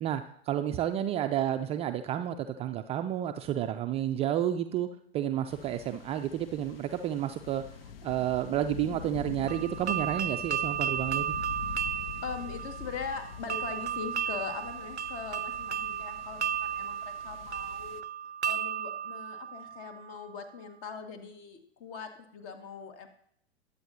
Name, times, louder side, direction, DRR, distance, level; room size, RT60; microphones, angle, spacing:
voice 1, 0.0-4.9 5.1-7.6 8.0-11.3, right 11 dB, 20° right, 7 dB, 0.4 m, -31 dB
sound 1, 5.5-18.0, left 7 dB, 60° left, 0.9 m, -45 dB
sound 2, 9.5-20.3, right 8 dB, 85° right, 0.5 m, -34 dB
voice 2, 12.2-18.0 18.4-23.1, left 5 dB, 40° left, 5 dB, 2.0 m, -41 dB
21.5 x 8.2 x 2.9 m, 0.70 s
figure-of-eight pair, 95°, 33 cm